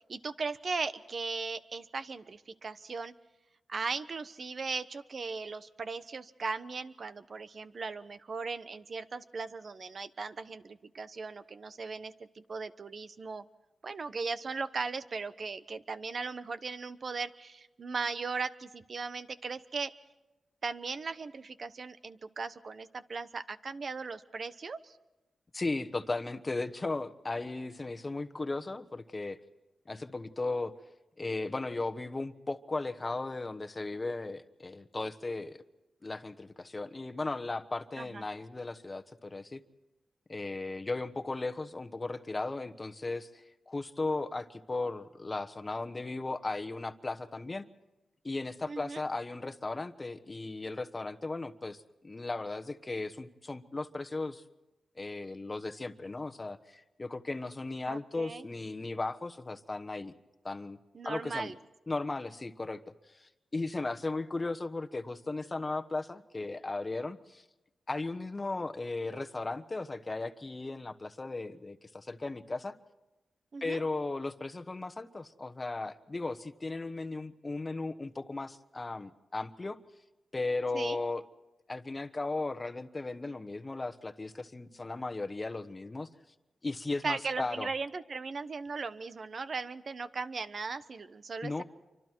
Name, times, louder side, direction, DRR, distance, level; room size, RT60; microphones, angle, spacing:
voice 1, 0.1-3.1 3.7-13.4 13.8-19.9 20.6-25.0 38.0-38.2 48.7-49.0 57.9-58.5 60.9-61.5 73.5-73.8 80.7-81.0 87.0-91.6, right 4 dB, 55° right, 12 dB, 1.0 m, -38 dB
voice 2, 25.5-29.4 29.9-30.7 31.2-35.6 36.0-39.6 40.3-47.7 48.2-54.4 55.0-60.2 60.4-60.8 61.0-61.5 61.9-62.8 63.1-67.4 67.9-72.7 73.6-79.8 80.3-81.2 81.7-86.1 86.6-87.7 91.4-91.6, left 3 dB, 30° left, 10 dB, 1.2 m, -36 dB
28.5 x 25.0 x 4.6 m, 1.0 s
cardioid pair, 85°, 0 cm